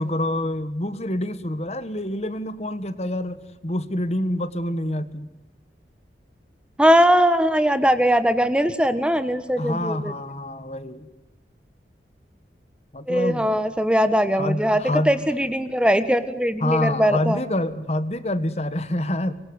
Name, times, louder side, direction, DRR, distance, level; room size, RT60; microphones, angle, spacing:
voice 1, 0.0-5.3 9.6-11.1 12.9-13.6 14.3-15.1 16.6-19.3, left 1 dB, 40° left, 13 dB, 1.5 m, -27 dB
voice 2, 6.8-10.1 13.1-17.4, equal, 5° right, 11 dB, 1.3 m, -20 dB
26.0 x 23.0 x 9.7 m, 0.95 s
head